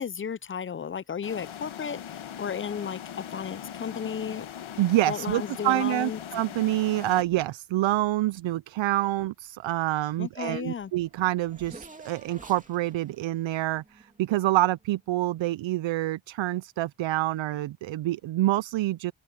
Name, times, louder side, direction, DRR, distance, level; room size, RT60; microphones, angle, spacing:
voice 1, 0.0-3.0 3.3-4.5 5.1-6.2 10.2-10.9, left 7 dB, 25° left, 0.5 m, -34 dB
sound 1, 1.2-7.2, left 9 dB, 75° left, 1.5 m, -40 dB
voice 2, 4.8-19.1, right 16 dB, 70° right, 0.5 m, -27 dB
Race car auto racing / Accelerating revving vroom, 10.4-10.5 10.7-14.7, right 2 dB, 15° right, 2.8 m, -51 dB
open air
cardioid pair, 75°, 48 cm